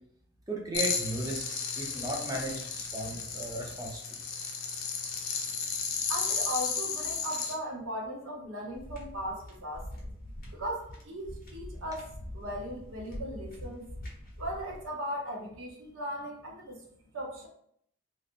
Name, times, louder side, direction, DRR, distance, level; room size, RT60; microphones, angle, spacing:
voice 1, 0.5-4.2, right 2 dB, 15° right, -2 dB, 0.6 m, -36 dB
sound 1, 0.7-7.5, left 6 dB, 80° left, 0.6 m, -34 dB
voice 2, 6.1-9.9 10.5-13.9 14.4-16.8 17.1-17.5, equal, 75° right, -1 dB, 0.8 m, -38 dB
sound 2, 8.7-14.9, left 1 dB, 45° left, 1.0 m, -44 dB
3.2 x 2.6 x 2.5 m, 0.69 s
head